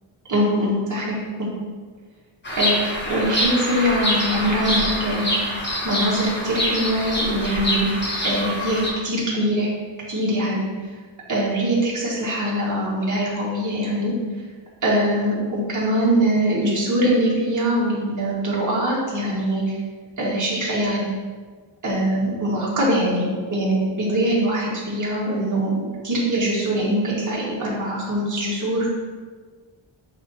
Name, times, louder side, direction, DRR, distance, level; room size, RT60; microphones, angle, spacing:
voice 1, 0.3-1.5 2.6-9.7 10.1-10.6 11.3-14.1 14.8-19.8 20.2-21.1 21.8-28.9, right 1 dB, 40° right, -6 dB, 1.8 m, -23 dB
Bird vocalization bird call bird song, 2.4-8.9, equal, 25° left, 1.2 m, -25 dB
8.0 x 2.9 x 4.2 m, 1.5 s
wide cardioid pair, 170°, 46 cm